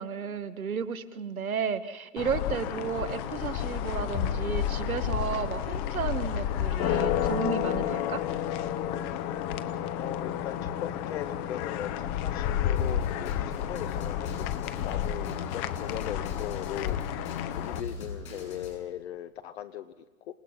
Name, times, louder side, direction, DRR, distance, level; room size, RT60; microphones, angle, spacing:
voice 1, 0.0-8.2, right 6 dB, 80° right, 11 dB, 1.6 m, -33 dB
sound 1, 2.2-17.8, left 10 dB, 25° left, 0.9 m, -31 dB
voice 2, 10.0-14.5 14.8-20.4, left 11 dB, 50° left, 9 dB, 1.0 m, -39 dB
Drum kit, 12.8-18.7, left 4 dB, 75° left, 7.5 m, -41 dB
27.5 x 18.0 x 5.6 m, 1.2 s
hypercardioid pair, 130°, 42 cm